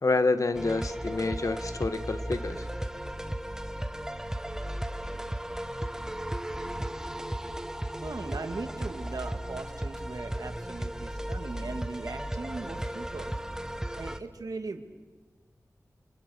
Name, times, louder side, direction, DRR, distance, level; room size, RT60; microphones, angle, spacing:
voice 1, 0.0-2.7, left 3 dB, 60° left, 11 dB, 1.5 m, -28 dB
sound 1, 0.5-14.2, right 1 dB, 10° right, 1.3 m, -35 dB
voice 2, 8.0-13.3 13.9-14.8, right 3 dB, 80° right, 6 dB, 2.3 m, -39 dB
29.5 x 28.5 x 6.8 m, 1.3 s
wide cardioid pair, 80°, 6 cm